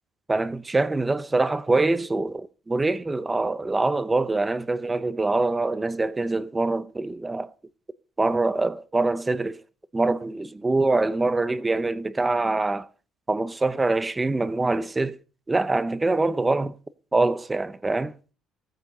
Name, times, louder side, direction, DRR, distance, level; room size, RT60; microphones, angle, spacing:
voice 1, 0.3-7.5 8.2-9.6 9.9-12.9 13.3-15.2 15.5-16.8 17.1-18.1, right 2 dB, 10° right, 0.8 m, -24 dB
17.5 x 9.0 x 6.7 m
cardioid pair, 175°, 0 cm